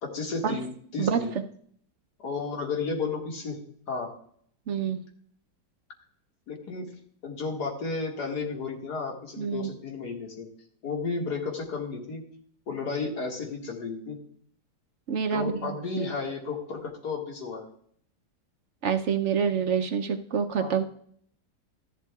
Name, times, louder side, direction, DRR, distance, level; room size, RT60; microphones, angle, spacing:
voice 1, 0.0-1.4 2.2-3.6 3.9-4.1 6.5-6.9 7.2-10.5 10.8-12.2 12.7-14.2 15.3-17.7 20.6-20.8, left 4 dB, 75° left, 1 dB, 2.4 m, -33 dB
voice 2, 4.7-5.0 9.4-9.7 15.1-16.1 18.8-20.8, right 7 dB, 60° right, 6 dB, 0.8 m, -27 dB
13.5 x 11.0 x 2.3 m, 0.62 s
omnidirectional pair, 1.8 m